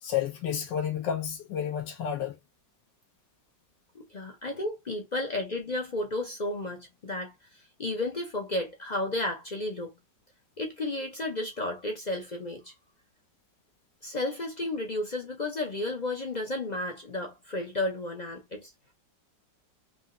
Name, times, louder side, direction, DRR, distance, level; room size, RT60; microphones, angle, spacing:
voice 1, 0.0-2.4, left 9 dB, 85° left, 1.7 m, -31 dB
voice 2, 4.1-9.9 10.6-12.7 14.0-18.7, left 2 dB, 55° left, 0.4 m, -33 dB
4.7 x 3.0 x 2.5 m
omnidirectional pair, 1.9 m